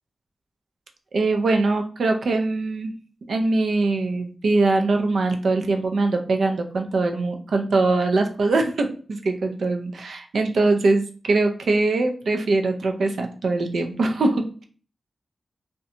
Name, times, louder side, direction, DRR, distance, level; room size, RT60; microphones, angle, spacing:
voice 1, 1.1-2.9 3.3-14.6, right 3 dB, 80° right, 4 dB, 0.4 m, -22 dB
2.5 x 2.2 x 2.7 m, 0.42 s
wide cardioid pair, 150°, 0 cm